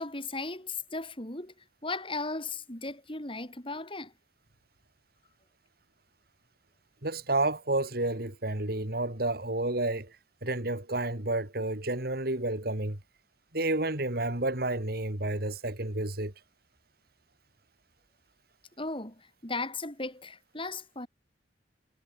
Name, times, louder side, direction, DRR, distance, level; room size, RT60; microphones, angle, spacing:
voice 1, 0.0-1.5 1.8-4.1 18.8-21.1, left 3 dB, 30° left, 6.1 m, -36 dB
voice 2, 7.0-10.1 10.4-13.0 13.5-16.3, right 2 dB, 60° right, 3.4 m, -30 dB
head